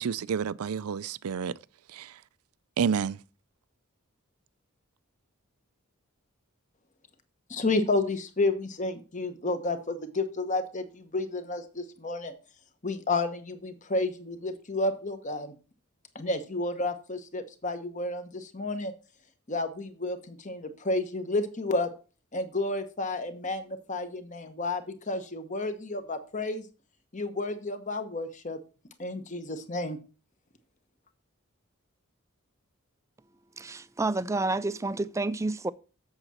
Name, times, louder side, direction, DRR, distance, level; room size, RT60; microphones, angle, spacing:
voice 1, 0.0-1.5 1.9-2.1 2.8-3.2, right 6 dB, 85° right, 0.4 m, -29 dB
voice 2, 7.5-12.3 12.8-15.5 16.1-18.9 19.5-21.9 22.3-26.7 27.1-28.6 29.0-30.0, left 2 dB, 35° left, 1.0 m, -31 dB
voice 3, 33.6-35.7, right 2 dB, 15° right, 0.3 m, -29 dB
7.9 x 7.4 x 4.2 m
head